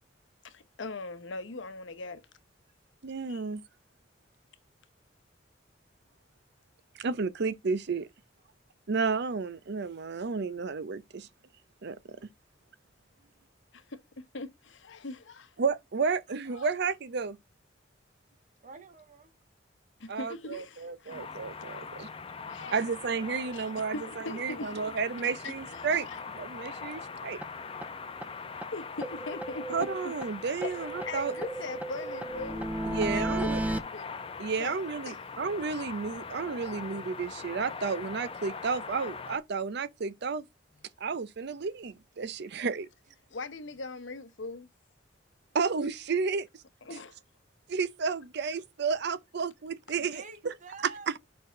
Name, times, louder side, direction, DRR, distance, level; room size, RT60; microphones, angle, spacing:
voice 1, 0.4-2.2 3.3-3.4 13.7-15.5 16.5-16.7 20.0-21.3 21.7-21.9 22.5-22.8 23.5-23.6 23.9-24.8 25.4-26.2 28.7-30.1 30.6-32.7 33.1-34.1 34.6-34.8 35.0-35.2 43.3-44.7 46.8-47.2, left 3 dB, 75° left, 0.9 m, -41 dB
voice 2, 3.0-3.6 7.0-8.1 8.9-11.3 11.8-12.2 15.6-17.4 20.1-22.1 22.7-26.1 26.3-27.4 29.7-31.3 32.9-33.6 34.4-40.4 41.0-42.9 45.5-46.5 47.7-50.5, right 5 dB, 60° right, 0.6 m, -32 dB
voice 3, 18.6-19.3 49.9-51.1, right 4 dB, 40° right, 1.3 m, -48 dB
sound 1, 21.1-39.4, left 5 dB, 30° left, 0.8 m, -42 dB
sound 2, 27.4-27.5 27.8-27.9 28.2-28.3 28.6-28.7 29.0-30.3 30.6-33.8, right 1 dB, 10° right, 0.4 m, -34 dB
5.5 x 4.5 x 5.0 m
head